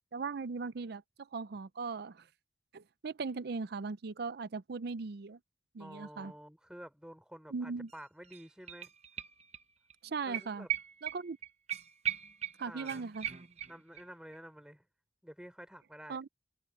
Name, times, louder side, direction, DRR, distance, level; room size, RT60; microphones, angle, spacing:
voice 1, 0.1-2.3 2.7-5.4 5.7-6.3 7.5-7.9 10.0-10.7 11.0-11.4 12.6-13.3 16.1-16.3, right 4 dB, 60° right, 0.5 m, -39 dB
voice 2, 5.8-8.9 10.2-10.7 12.7-13.1 13.7-14.9 15.2-16.2, equal, 5° right, 5.7 m, -50 dB
sound 1, 7.9-8.0 8.2-9.6 9.9-10.0 10.3-14.0 14.3-14.4, right 11 dB, 35° right, 0.9 m, -39 dB
head